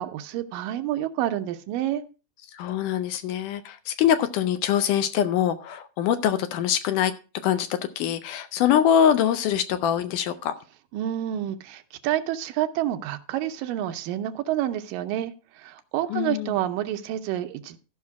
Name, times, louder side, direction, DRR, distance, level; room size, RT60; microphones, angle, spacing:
voice 1, 0.0-2.0 10.9-17.8, right 12 dB, 80° right, 9 dB, 2.3 m, -29 dB
voice 2, 2.5-7.1 7.4-10.6 16.1-16.5, left 9 dB, 75° left, 10 dB, 2.0 m, -23 dB
13.5 x 5.9 x 4.6 m, 0.33 s
omnidirectional pair, 4.0 m